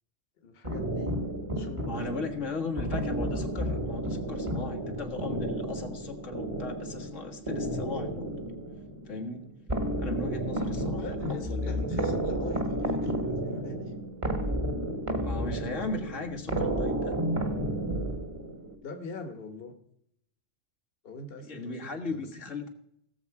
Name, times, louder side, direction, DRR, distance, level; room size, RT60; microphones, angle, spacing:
voice 1, 0.4-1.1 1.5-2.4 11.0-13.9 18.8-19.7 21.0-22.3, left 3 dB, 50° left, 6 dB, 1.4 m, -43 dB
sound 1, 0.6-18.8, right 1 dB, 25° right, 1.4 m, -32 dB
voice 2, 1.8-8.4 9.1-9.5 10.0-11.9 15.2-17.2 21.4-22.7, left 3 dB, 80° left, 4 dB, 1.8 m, -37 dB
18.0 x 7.0 x 4.7 m, 0.75 s
omnidirectional pair, 1.3 m